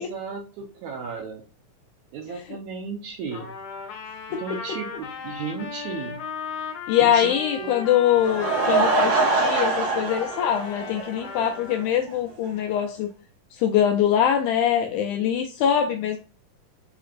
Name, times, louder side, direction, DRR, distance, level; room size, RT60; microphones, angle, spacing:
voice 1, 0.0-1.4 2.1-3.5 4.3-6.2 6.9-7.9, right 5 dB, 80° right, 2 dB, 1.8 m, -35 dB
Trumpet, 3.3-11.8, left 6 dB, 65° left, 1.7 m, -36 dB
voice 2, 6.9-13.1 13.5-16.2, left 9 dB, 80° left, 3 dB, 1.8 m, -23 dB
Laughter / Crowd, 8.0-11.5 11.8-11.9 12.5-12.6 12.7-12.8, right 3 dB, 60° right, 2.2 m, -24 dB
5.8 x 2.9 x 2.5 m, 0.35 s
omnidirectional pair, 4.0 m